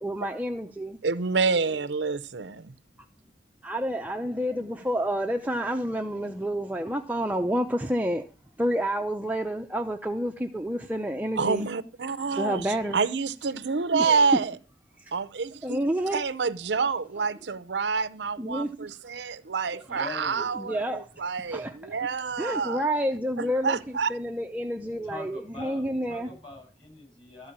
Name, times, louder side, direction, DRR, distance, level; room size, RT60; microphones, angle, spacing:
voice 1, 0.0-1.0 3.6-8.2 8.6-11.7 12.3-13.0 14.0-14.3 15.0-15.1 15.6-16.2 18.4-18.7 20.6-21.1 21.5-22.0 22.4-26.3, equal, 10° right, 0.6 m, -29 dB
voice 2, 1.0-2.7 11.4-12.7 12.9-14.6 15.1-15.8 16.1-22.8 23.4-24.1, right 5 dB, 75° right, 0.6 m, -28 dB
voice 3, 19.8-20.5 25.0-27.5, left 2 dB, 25° left, 7.1 m, -43 dB
13.5 x 4.7 x 8.7 m
head